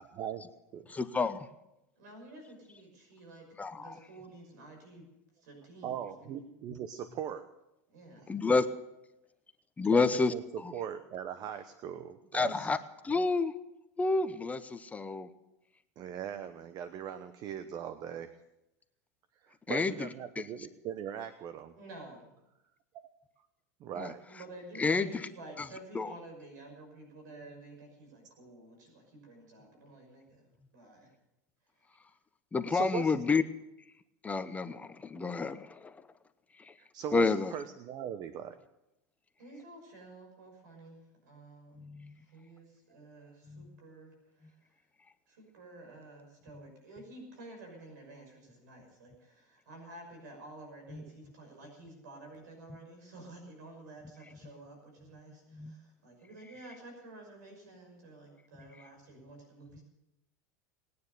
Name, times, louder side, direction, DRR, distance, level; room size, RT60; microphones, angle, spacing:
voice 1, 0.9-1.5 3.6-4.0 8.3-8.7 9.8-10.3 10.6-10.7 12.3-12.8 13.0-13.5 14.0-15.3 19.7-19.9 20.4-20.5 24.0-24.1 24.8-25.3 25.6-25.7 25.9-26.1 32.5-33.4 34.2-35.9 37.1-37.5 41.8-42.1 43.5-43.7 50.9-51.0 55.5-55.7, left 4 dB, 15° left, 10 dB, 0.8 m, -29 dB
voice 2, 2.0-5.1 5.4-6.5 7.9-8.2 21.8-22.3 24.3-31.1 39.4-41.8 42.3-44.1 44.4-44.5 45.3-59.8, right 2 dB, 85° right, 3 dB, 5.9 m, -51 dB
voice 3, 5.8-7.4 9.9-10.0 10.3-12.7 16.0-18.3 19.4-21.7 23.8-24.2 32.7-33.2 36.8-38.6, right 9 dB, 45° right, 11 dB, 1.0 m, -40 dB
20.0 x 9.6 x 6.8 m, 0.88 s
supercardioid pair, 120°, 9 cm